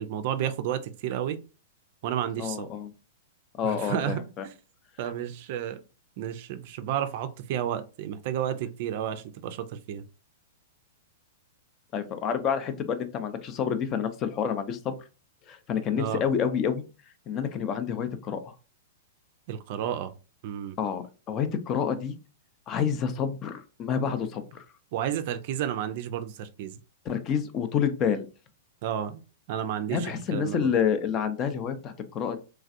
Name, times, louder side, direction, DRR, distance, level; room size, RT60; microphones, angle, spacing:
voice 1, 0.0-1.4 2.0-2.7 3.6-4.5 5.0-5.8 6.2-10.0 16.0-16.2 19.5-20.1 20.4-20.8 24.9-26.8 28.8-29.2 29.5-30.7, right 10 dB, 55° right, 10 dB, 0.4 m, -31 dB
voice 2, 2.4-2.9 3.6-4.2 11.9-14.9 15.5-16.8 17.3-18.5 20.8-22.1 22.7-24.6 27.1-28.3 29.9-32.4, left 7 dB, 35° left, 9 dB, 0.5 m, -28 dB
3.2 x 2.4 x 2.6 m, 0.32 s
hypercardioid pair, 110°, 0 cm